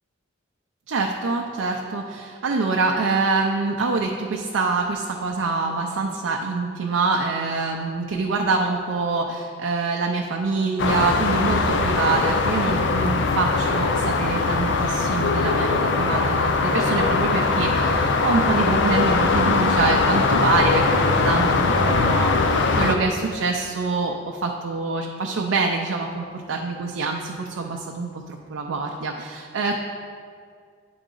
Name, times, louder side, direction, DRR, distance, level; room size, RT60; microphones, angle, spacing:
voice 1, 0.9-29.7, right 3 dB, 90° right, 1 dB, 0.5 m, -25 dB
sound 1, 10.8-22.9, left 4 dB, 65° left, 0.5 m, -21 dB
9.2 x 3.9 x 3.8 m, 2.2 s
head